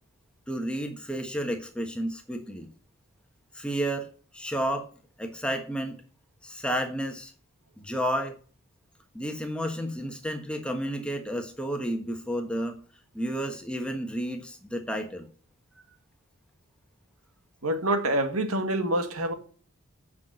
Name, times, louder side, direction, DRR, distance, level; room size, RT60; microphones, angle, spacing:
voice 1, 0.5-2.7 3.5-4.1 4.3-4.9 5.2-6.0 6.4-7.3 7.8-8.4 9.1-12.8 13.1-15.3, equal, 5° left, 1.3 m, -31 dB
voice 2, 17.6-19.3, right 1 dB, 85° right, 1.7 m, -26 dB
8.5 x 6.1 x 7.6 m
head